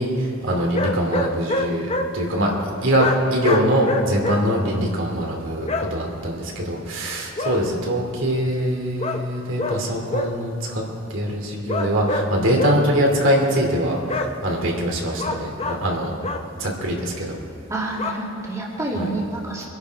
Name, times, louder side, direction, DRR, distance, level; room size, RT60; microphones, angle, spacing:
voice 1, 0.0-2.5 2.8-10.8 11.1-16.1 16.6-17.4 18.9-19.1, equal, 65° right, -1 dB, 2.8 m, -23 dB
sound 1, 0.7-2.1 3.0-4.4 5.7-5.9 7.4-7.6 9.0-9.2 9.6-9.8 10.1-10.3 11.7-12.3 12.6-12.8 14.1-14.3 15.2-15.8 16.2-16.4 18.0-18.1, left 2 dB, 30° left, 0.9 m, -25 dB
voice 2, 17.7-19.6, right 2 dB, 15° right, -4 dB, 2.4 m, -28 dB
24.5 x 11.0 x 4.8 m, 2.6 s
head